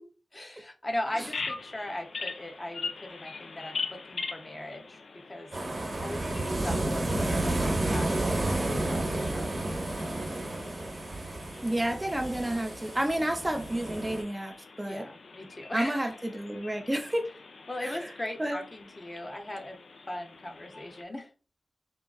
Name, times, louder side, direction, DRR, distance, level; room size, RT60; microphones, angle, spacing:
voice 1, 0.3-5.0 5.3-5.5 6.0-7.6 7.9-8.4 8.9-9.8 14.8-16.1 17.7-19.8 20.1-21.3, left 1 dB, 35° left, 0.6 m, -38 dB
Bird vocalization bird call bird song, 1.2-21.0, left 4 dB, 85° left, 0.3 m, -43 dB
sound 1, 5.5-14.2, right 2 dB, 70° right, 0.9 m, -31 dB
voice 2, 11.6-15.1 15.7-17.3 17.8-18.0 18.4-18.6, right 1 dB, 20° right, 0.5 m, -30 dB
3.6 x 2.2 x 2.3 m
cardioid pair, 50°, 0 cm